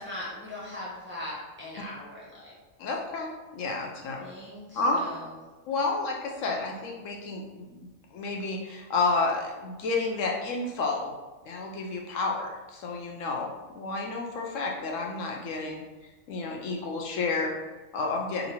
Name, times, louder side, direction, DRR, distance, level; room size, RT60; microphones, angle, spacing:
voice 1, 0.0-2.5 4.2-5.2, left 1 dB, 10° right, -7 dB, 0.9 m, -40 dB
voice 2, 2.8-4.2 4.7-5.0 5.7-11.1 11.5-18.5, left 3 dB, 75° left, 0 dB, 0.9 m, -31 dB
5.2 x 2.6 x 2.9 m, 1.2 s
omnidirectional pair, 1.4 m